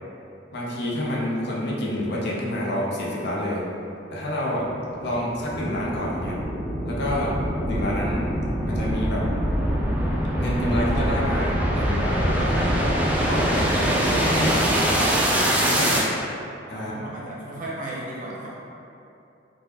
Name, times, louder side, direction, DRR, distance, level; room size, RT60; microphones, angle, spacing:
voice 1, 0.5-3.6 4.1-4.7 5.0-6.4 6.8-7.3 7.6-8.3 8.7-9.2 10.4-13.0 13.3-14.7 15.3-16.0 16.7-17.1, left 1 dB, 65° left, -5 dB, 0.6 m, -28 dB
sound 1, 4.6-16.1, equal, 10° right, 0.3 m, -24 dB
voice 2, 16.7-18.5, right 1 dB, 45° right, -6 dB, 0.6 m, -35 dB
3.4 x 2.2 x 2.9 m, 2.7 s
head